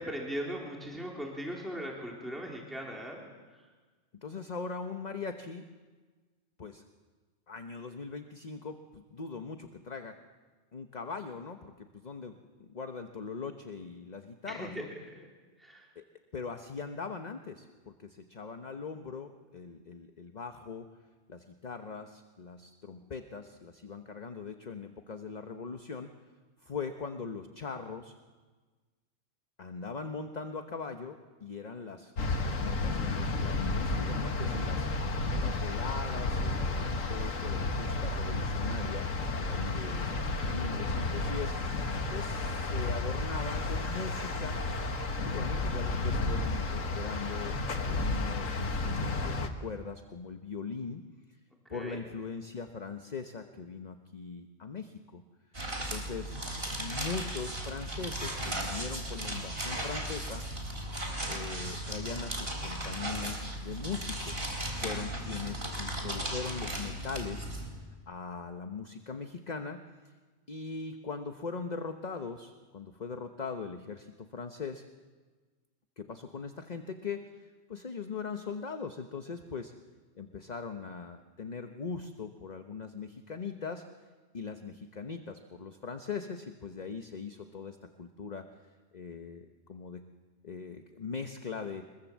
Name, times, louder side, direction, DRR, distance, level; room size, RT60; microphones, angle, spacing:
voice 1, 0.0-3.2 14.5-14.8 15.6-15.8 51.7-52.0, equal, ahead, -2 dB, 3.6 m, -38 dB
voice 2, 4.2-5.7 6.6-6.8 7.5-10.2 10.7-14.9 16.0-16.1 16.3-20.9 21.3-26.1 26.6-28.1 29.6-34.9 35.3-39.1 39.4-40.1 40.5-41.6 42.1-44.6 45.2-51.1 51.7-55.2 55.9-56.4 56.8-60.8 61.2-64.5 64.8-67.8 68.1-69.8 70.5-74.8 76.0-79.7 80.2-83.8 84.3-88.5 88.9-90.0 90.4-91.9, left 5 dB, 35° left, 6 dB, 1.0 m, -40 dB
sound 1, 32.2-49.5, left 2 dB, 80° left, 2.0 m, -32 dB
sound 2, 55.5-67.7, right 1 dB, 45° right, 4.1 m, -36 dB
24.0 x 22.0 x 7.4 m, 1.4 s
omnidirectional pair, 1.3 m